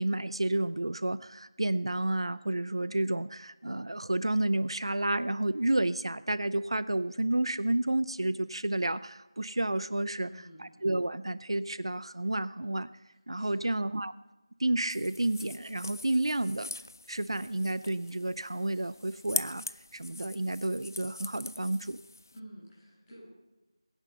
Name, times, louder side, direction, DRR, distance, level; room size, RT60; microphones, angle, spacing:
voice 1, 0.0-10.3 10.8-12.9 13.3-14.1 14.6-16.7 17.1-19.6 19.9-22.0, right 1 dB, 70° right, 16 dB, 0.6 m, -30 dB
voice 2, 10.1-10.7 13.3-13.8 22.3-23.3, equal, 5° left, -12 dB, 5.9 m, -50 dB
sound 1, 14.9-22.4, left 2 dB, 40° left, 0.5 m, -42 dB
21.5 x 10.5 x 5.6 m, 1.1 s
figure-of-eight pair, 175°, 3 cm